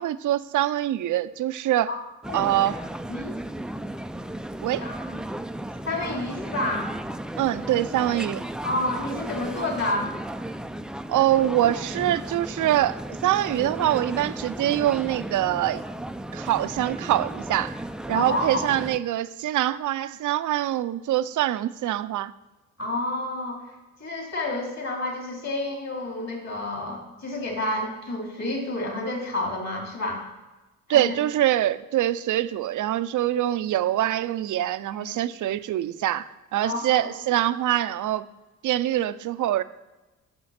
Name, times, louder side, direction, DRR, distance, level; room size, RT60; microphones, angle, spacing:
voice 1, 0.0-1.9 2.3-2.8 4.6-4.8 7.4-8.4 11.1-15.8 16.3-17.7 18.1-22.3 30.9-38.3 38.6-39.6, right 13 dB, 60° right, 0.6 m, -24 dB
sound 1, 2.2-19.0, right 1 dB, ahead, 0.4 m, -35 dB
voice 2, 4.8-5.2 5.9-6.9 8.6-10.1 18.1-18.6 22.8-23.7 24.0-30.2 30.9-31.1 34.9-35.2 36.6-37.1, left 1 dB, 45° left, 3.7 m, -30 dB
7.8 x 6.9 x 5.8 m
hypercardioid pair, 50°, 36 cm